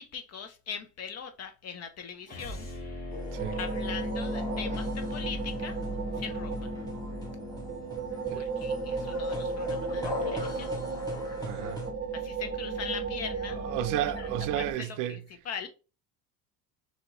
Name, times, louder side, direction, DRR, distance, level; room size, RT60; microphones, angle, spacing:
voice 1, 0.0-2.7 3.5-5.8 6.1-6.7 8.3-10.7 12.1-13.6 14.0-14.3 14.5-15.7, left 7 dB, 45° left, 0.5 m, -41 dB
sound 1, 2.3-8.4, left 1 dB, 25° left, 1.7 m, -39 dB
sound 2, 3.1-11.9, left 1 dB, 10° left, 1.7 m, -40 dB
sound 3, 3.4-14.7, right 3 dB, 25° right, 0.6 m, -35 dB
voice 2, 11.4-11.8 13.6-15.2, right 12 dB, 65° right, 0.5 m, -32 dB
4.1 x 2.7 x 2.9 m
cardioid pair, 115°, 35 cm